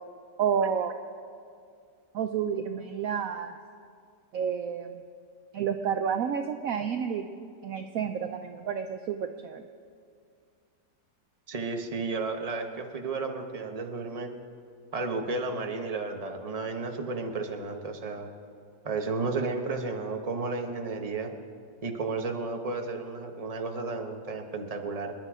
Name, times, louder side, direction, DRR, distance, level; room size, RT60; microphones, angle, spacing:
voice 1, 0.4-0.9 2.1-3.5 4.3-5.0 5.5-7.2 7.6-9.6, right 7 dB, 65° right, 7 dB, 0.9 m, -30 dB
voice 2, 11.5-14.3 14.9-18.3 18.8-21.3 21.8-25.1, right 3 dB, 25° right, 4 dB, 1.1 m, -33 dB
26.5 x 11.0 x 4.9 m, 2.3 s
omnidirectional pair, 1.8 m